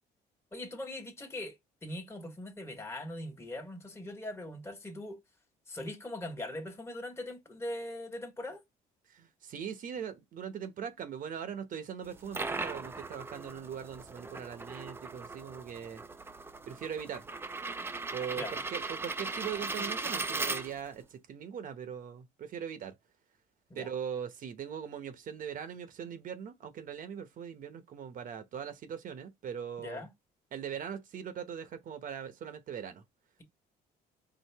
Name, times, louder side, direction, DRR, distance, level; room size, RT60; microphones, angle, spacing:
voice 1, 0.5-5.2 5.7-8.6 18.4-18.5 23.7-23.9 29.8-30.1, left 1 dB, 15° left, 1.4 m, -41 dB
voice 2, 9.1-16.0 16.7-17.3 18.1-23.0 23.7-30.0 30.5-33.0, right 8 dB, 55° right, 0.9 m, -40 dB
sound 1, 12.1-21.0, right 3 dB, 15° right, 0.5 m, -38 dB
4.7 x 2.5 x 3.5 m
cardioid pair, 110°, 17 cm